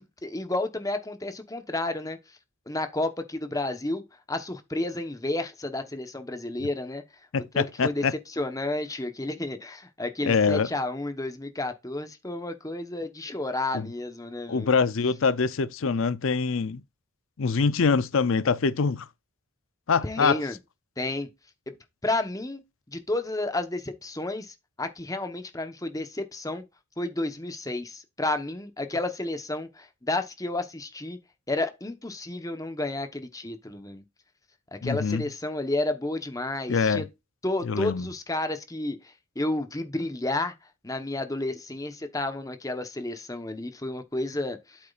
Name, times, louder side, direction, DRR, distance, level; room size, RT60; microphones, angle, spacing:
voice 1, 0.0-2.2 2.7-4.0 4.3-7.0 7.5-8.0 8.3-14.7 20.0-20.6 21.0-21.3 21.7-21.8 22.0-22.6 22.9-26.6 27.0-31.2 31.5-34.0 34.7-37.0 37.4-39.0 39.3-40.5 40.8-44.8, left 2 dB, 15° left, 1.0 m, -31 dB
voice 2, 7.3-8.1 10.2-10.7 13.7-13.9 14.5-16.8 17.4-19.1 19.9-20.4 34.8-35.3 36.7-37.1 37.6-38.1, left 5 dB, 60° left, 0.5 m, -24 dB
8.6 x 8.1 x 2.5 m
head